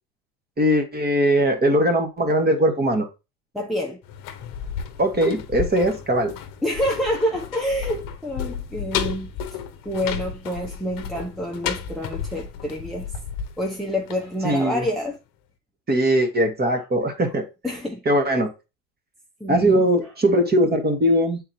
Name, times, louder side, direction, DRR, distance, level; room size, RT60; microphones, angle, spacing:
voice 1, 0.6-3.1 5.0-6.3 14.4-14.9 15.9-17.4 18.0-18.5 19.5-21.4, equal, 20° right, 1.5 m, -20 dB
voice 2, 3.5-4.0 6.6-9.3 9.8-13.1 13.6-15.2 17.6-18.0 19.4-20.1, equal, ahead, 0.9 m, -27 dB
sound 1, 4.0-14.8 15.1-15.2, left 8 dB, 45° left, 1.0 m, -33 dB
8.7 x 4.0 x 2.8 m
hypercardioid pair, 90°, 45 cm